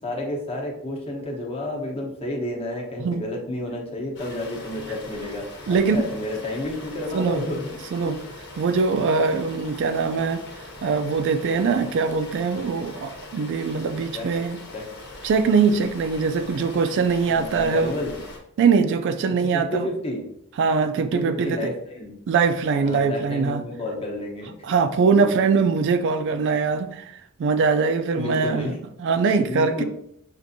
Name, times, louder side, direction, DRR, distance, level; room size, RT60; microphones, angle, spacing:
voice 1, 0.0-8.1 14.1-14.3 14.7-14.9 16.5-16.7 17.3-18.2 19.4-20.2 20.9-22.1 22.7-24.5 28.2-28.8 29.3-29.8, left 1 dB, 30° left, 0 dB, 0.8 m, -31 dB
sound 1, 4.1-18.4, left 2 dB, 55° left, 1.0 m, -41 dB
voice 2, 5.7-6.1 7.1-7.5 7.9-8.2 8.6-10.4 10.8-14.6 15.2-18.0 18.6-19.9 20.6-21.7 22.3-23.6 24.6-28.7 29.0-29.8, right 5 dB, 55° right, 9 dB, 0.3 m, -22 dB
5.9 x 2.5 x 2.6 m, 0.73 s
head